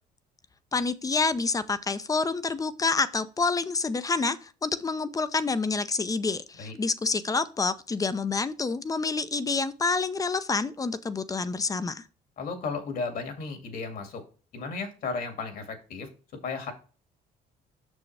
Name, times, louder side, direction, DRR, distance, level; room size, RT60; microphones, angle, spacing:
voice 1, 0.7-12.0, left 4 dB, 20° left, 14 dB, 0.6 m, -28 dB
voice 2, 12.4-14.2 14.5-16.1 16.4-16.7, left 4 dB, 60° left, 6 dB, 2.2 m, -34 dB
6.7 x 6.2 x 3.3 m, 0.36 s
cardioid pair, 110°, 17 cm